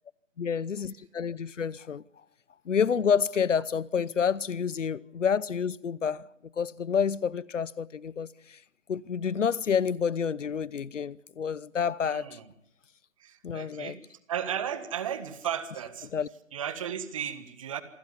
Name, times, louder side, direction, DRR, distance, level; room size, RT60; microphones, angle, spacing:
voice 1, 0.4-2.0 2.7-6.3 6.6-8.6 8.9-12.3 13.4-13.9 16.1-16.3, left 7 dB, 70° left, 0.9 m, -28 dB
voice 2, 12.0-12.5 13.2-14.0 14.3-16.1 16.5-17.8, right 9 dB, 25° right, 1.5 m, -34 dB
27.0 x 15.0 x 9.5 m
hypercardioid pair, 160°, 38 cm